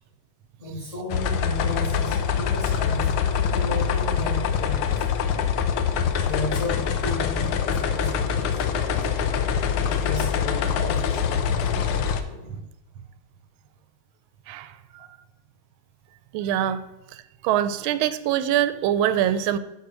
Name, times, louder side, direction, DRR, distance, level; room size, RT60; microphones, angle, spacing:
voice 1, 0.6-3.1 3.5-5.1 6.1-8.6 9.8-12.6, left 1 dB, 15° left, -6 dB, 3.5 m, -34 dB
sound 1, 1.1-12.2, left 7 dB, 85° left, 1.6 m, -24 dB
voice 2, 14.5-15.2 16.3-16.8 17.4-19.6, right 11 dB, 80° right, 12 dB, 1.4 m, -24 dB
8.4 x 4.8 x 6.1 m, 1.0 s
omnidirectional pair, 2.3 m